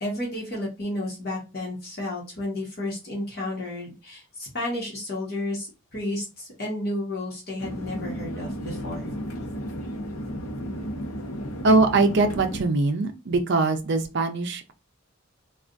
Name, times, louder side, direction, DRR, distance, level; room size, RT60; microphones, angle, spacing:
voice 1, 0.0-9.1, left 1 dB, 45° left, 1.2 m, -32 dB
sound 1, 7.6-12.6, equal, 85° left, 0.7 m, -33 dB
voice 2, 11.6-14.7, right 3 dB, 55° right, 0.5 m, -22 dB
3.3 x 2.3 x 2.5 m
head